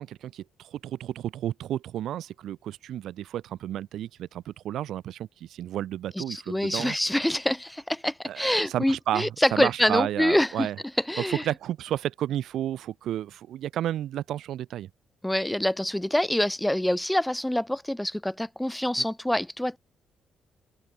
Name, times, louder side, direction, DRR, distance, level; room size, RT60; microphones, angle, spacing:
voice 1, 0.0-7.0 8.2-10.8 11.3-14.9, right 12 dB, 75° right, 0.8 m, -32 dB
voice 2, 6.2-10.7 11.1-11.4 15.2-19.8, left 1 dB, 5° left, 0.3 m, -26 dB
cardioid pair, 90°, 0 cm